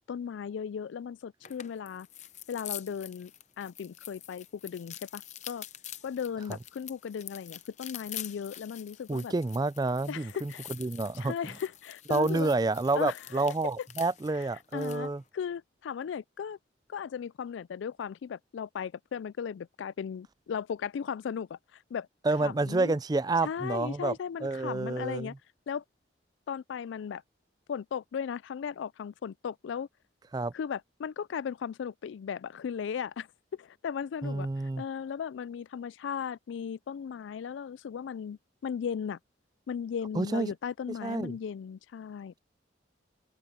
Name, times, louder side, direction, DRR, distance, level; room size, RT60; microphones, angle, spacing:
voice 1, 0.1-2.1 2.5-3.3 3.6-5.7 6.0-9.3 10.1-10.7 11.1-12.5 12.9-13.2 14.4-14.5 14.7-16.6 16.9-22.1 22.4-23.0 23.4-25.3 25.7-25.8 26.5-27.2 27.7-29.9 30.5-39.2 39.7-42.3, left 7 dB, 85° left, 0.3 m, -37 dB
sound 1, 1.4-15.1, left 12 dB, 40° left, 0.7 m, -46 dB
voice 2, 9.1-10.5 10.8-11.3 12.1-15.2 22.2-24.2 24.4-25.3 30.3-30.5 34.2-34.8 40.1-40.5 41.0-41.4, right 3 dB, 20° right, 0.3 m, -29 dB
head